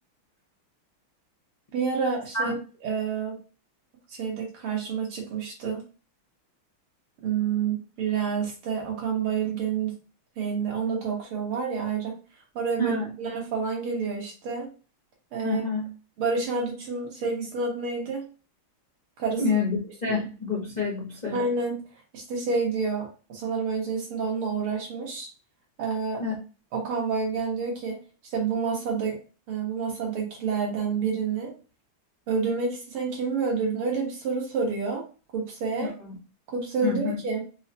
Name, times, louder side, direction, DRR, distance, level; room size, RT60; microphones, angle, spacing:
voice 1, 1.7-2.5 2.8-3.4 4.1-5.8 7.2-9.9 10.4-12.1 12.6-14.7 15.3-15.6 16.2-18.3 19.2-19.4 20.0-20.2 21.3-21.8 22.1-25.3 25.8-26.2 26.7-28.0 28.3-29.2 29.5-31.5 32.3-35.0 35.3-35.9 36.5-37.4, right 5 dB, 80° right, -1 dB, 2.2 m, -28 dB
voice 2, 15.4-15.9 19.4-21.4 26.2-26.3 35.8-36.1 36.8-37.2, left 4 dB, 60° left, -3 dB, 0.4 m, -28 dB
5.4 x 2.2 x 2.8 m, 0.35 s
omnidirectional pair, 2.3 m